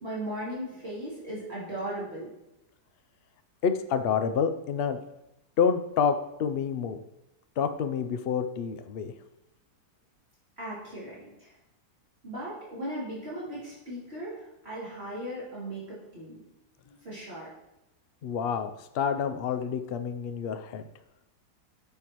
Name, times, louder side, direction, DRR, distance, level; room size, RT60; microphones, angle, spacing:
voice 1, 0.0-2.3 10.6-11.5 12.2-16.4 16.8-17.5, right 1 dB, 40° right, -9 dB, 3.2 m, -37 dB
voice 2, 3.6-5.0 5.6-7.0 7.6-9.1 18.2-20.8, left 6 dB, 85° left, 9 dB, 0.5 m, -28 dB
10.0 x 6.5 x 3.0 m, 0.89 s
omnidirectional pair, 1.7 m